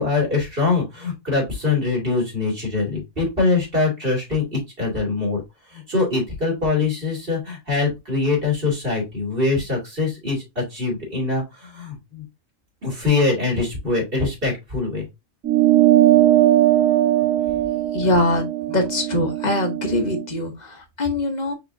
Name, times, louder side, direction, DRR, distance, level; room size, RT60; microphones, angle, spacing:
voice 1, 0.0-5.4 5.7-12.2 12.8-15.1, left 3 dB, 40° right, 2.5 m, -23 dB
sound 1, 15.4-20.2, right 13 dB, 75° right, 1.4 m, -19 dB
voice 2, 17.9-21.5, left 1 dB, 35° left, 0.9 m, -23 dB
4.7 x 3.7 x 2.6 m
omnidirectional pair, 1.4 m